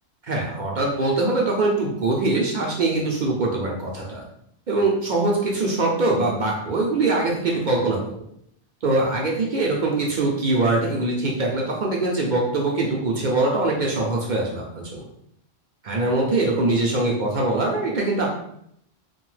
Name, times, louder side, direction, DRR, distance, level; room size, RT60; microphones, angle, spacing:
voice 1, 0.2-4.2 4.7-8.2 8.8-15.0 15.8-18.3, right 2 dB, 55° right, -2 dB, 0.5 m, -23 dB
2.7 x 2.2 x 3.1 m, 0.73 s
omnidirectional pair, 1.1 m